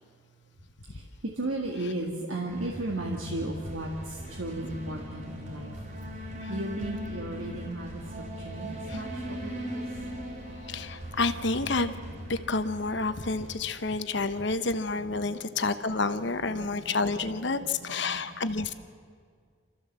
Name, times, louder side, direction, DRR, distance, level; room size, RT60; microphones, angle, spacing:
voice 1, 0.8-5.8 6.1-9.8 14.9-15.2 16.6-17.0 17.6-18.3, right 2 dB, 75° right, 0 dB, 1.9 m, -36 dB
sound 1, 2.5-13.6, equal, 40° right, 3.7 m, -39 dB
voice 2, 10.7-11.9 12.3-18.7, left 3 dB, 60° left, 10 dB, 1.0 m, -29 dB
28.5 x 14.0 x 7.5 m, 2.1 s
head